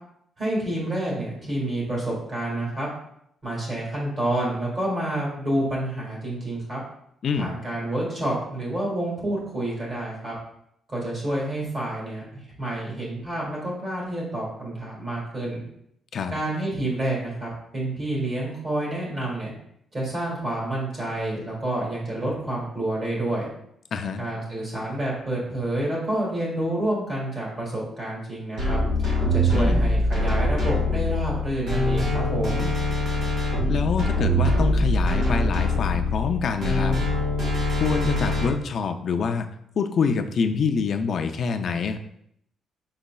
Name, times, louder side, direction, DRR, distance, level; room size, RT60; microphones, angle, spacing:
voice 1, 0.4-2.9 3.4-6.8 7.4-10.3 10.9-15.6 16.3-19.5 19.9-23.5 24.2-28.8 29.3-32.7, right 1 dB, 30° right, -4 dB, 1.8 m, -28 dB
voice 2, 23.9-24.2 29.5-29.8 33.7-37.0 37.8-39.5 39.8-42.0, left 5 dB, 45° left, 6 dB, 0.3 m, -26 dB
sound 1, 28.6-38.5, left 1 dB, 65° right, 1.4 m, -23 dB
5.4 x 4.0 x 2.2 m, 0.73 s
cardioid pair, 165°, 0 cm